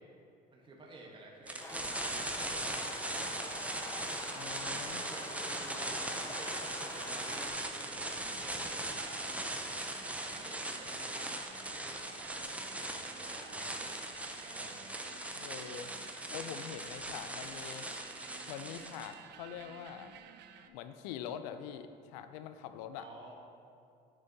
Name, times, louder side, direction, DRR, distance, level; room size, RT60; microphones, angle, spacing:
voice 1, 0.5-3.4 4.5-13.7 14.3-14.8 23.0-23.3, right 2 dB, 25° right, -2 dB, 1.2 m, -53 dB
sound 1, 1.5-19.1, right 1 dB, 5° right, 0.6 m, -39 dB
sound 2, 1.6-7.5, left 1 dB, 15° left, 1.0 m, -46 dB
voice 2, 4.3-5.0 15.3-16.0 16.3-17.9 18.5-20.1 20.7-23.1, left 9 dB, 90° left, 10 dB, 0.4 m, -44 dB
sound 3, 6.8-20.7, right 9 dB, 60° right, 0.5 m, -53 dB
8.7 x 6.5 x 2.8 m, 2.5 s
supercardioid pair, 85°, 20 cm